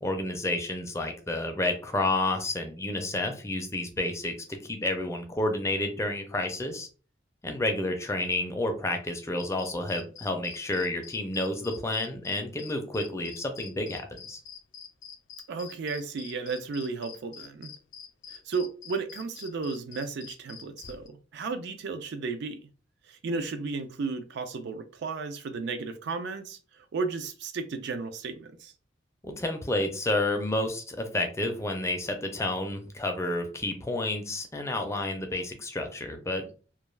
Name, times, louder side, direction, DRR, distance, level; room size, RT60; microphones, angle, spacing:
voice 1, 0.0-4.3 4.7-6.9 7.4-14.4 29.2-36.5, left 2 dB, 15° left, 0.4 m, -30 dB
sound 1, 9.4-21.1, left 7 dB, 80° left, 0.4 m, -46 dB
voice 2, 15.5-17.7 18.3-22.6 23.1-28.7, right 4 dB, 65° right, 0.4 m, -34 dB
2.3 x 2.2 x 3.1 m
head